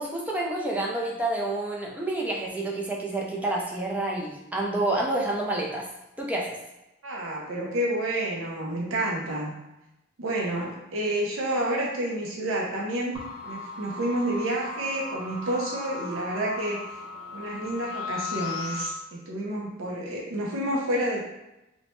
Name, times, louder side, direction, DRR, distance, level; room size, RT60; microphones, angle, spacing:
voice 1, 0.0-5.9 6.2-6.6, right 2 dB, 5° right, -3 dB, 0.4 m, -28 dB
voice 2, 7.0-9.5 10.2-13.2 13.4-16.9 17.3-21.3, right 1 dB, 90° right, -3 dB, 0.5 m, -29 dB
sound 1, 13.1-18.9, left 3 dB, 25° right, 0.9 m, -37 dB
3.0 x 2.1 x 3.0 m, 0.93 s
head